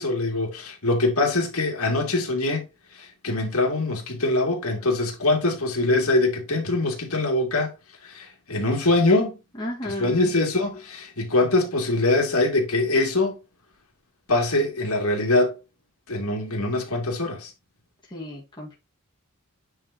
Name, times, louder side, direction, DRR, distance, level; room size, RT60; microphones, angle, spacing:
voice 1, 0.0-2.7 2.9-7.7 8.0-9.3 10.0-13.4 14.3-15.5 16.1-17.5, left 2 dB, 70° left, 2.5 m, -23 dB
voice 2, 9.5-10.3 18.1-18.8, equal, 20° left, 1.8 m, -33 dB
9.7 x 4.8 x 2.9 m
head